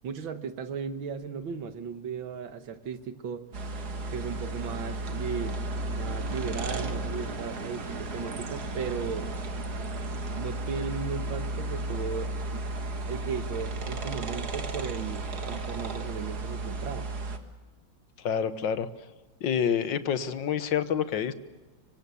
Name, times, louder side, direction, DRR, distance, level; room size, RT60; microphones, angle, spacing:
voice 1, 0.0-3.5 4.1-9.3 10.4-12.6 13.1-17.1, right 6 dB, 85° right, 9 dB, 2.2 m, -36 dB
sound 1, 3.5-17.4, right 2 dB, 55° right, 2.3 m, -34 dB
voice 2, 18.2-18.9 19.4-21.3, left 8 dB, 75° left, 12 dB, 1.9 m, -27 dB
25.5 x 24.5 x 7.0 m, 1.3 s
omnidirectional pair, 2.1 m